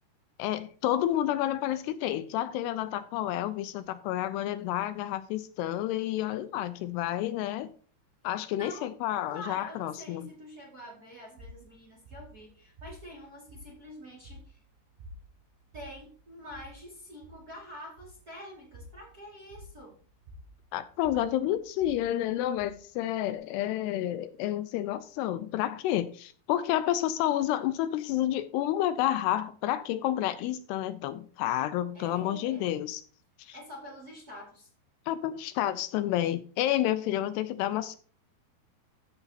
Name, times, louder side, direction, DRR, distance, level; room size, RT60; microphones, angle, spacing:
voice 1, 0.4-7.7 8.2-10.3 20.7-33.0 33.4-33.5 35.1-38.0, left 12 dB, 80° left, 2.5 m, -30 dB
voice 2, 8.5-8.9 9.3-14.6 15.7-20.0 31.9-32.7 33.5-34.7, equal, 30° right, 1.9 m, -46 dB
sound 1, 11.4-23.4, left 1 dB, 85° right, 4.5 m, -52 dB
13.5 x 6.9 x 2.9 m
omnidirectional pair, 4.9 m